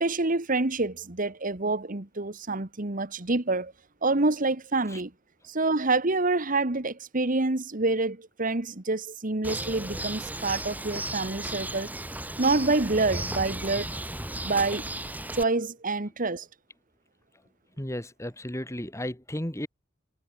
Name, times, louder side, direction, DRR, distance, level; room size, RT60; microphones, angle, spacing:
voice 1, 0.0-3.7 4.0-5.1 5.5-11.9 12.4-13.9 14.4-14.8 15.3-16.5, right 3 dB, 45° right, 1.6 m, -27 dB
Bird, 9.4-15.4, right 1 dB, 10° right, 7.2 m, -35 dB
voice 2, 17.8-19.7, left 1 dB, 15° left, 3.9 m, -34 dB
head